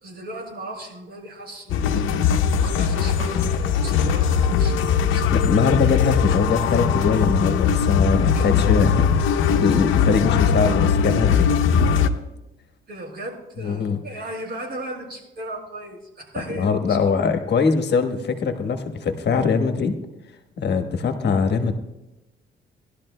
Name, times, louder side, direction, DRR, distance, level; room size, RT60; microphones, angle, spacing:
voice 1, 0.0-2.3 2.5-5.5 8.3-8.5 12.9-17.0, right 1 dB, 50° right, 1 dB, 4.4 m, -36 dB
sound 1, 1.7-12.1, left 6 dB, 85° left, 0.8 m, -20 dB
voice 2, 5.3-11.5 13.6-14.0 16.5-19.9 20.6-21.7, left 5 dB, 60° left, 6 dB, 1.3 m, -22 dB
19.5 x 12.0 x 2.2 m, 0.97 s
cardioid pair, 90°, 20 cm